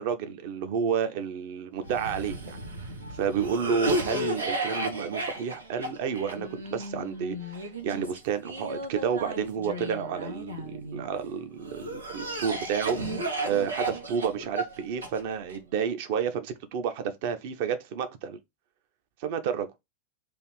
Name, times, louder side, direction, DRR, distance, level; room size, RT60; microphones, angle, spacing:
voice 1, 0.0-2.6 3.1-13.0 13.4-18.4 19.2-19.7, right 7 dB, 50° right, 0.6 m, -30 dB
Cough, 1.8-11.0 11.6-15.6, right 1 dB, 75° right, 0.9 m, -34 dB
3.4 x 2.6 x 4.6 m
figure-of-eight pair, 90°, 0 cm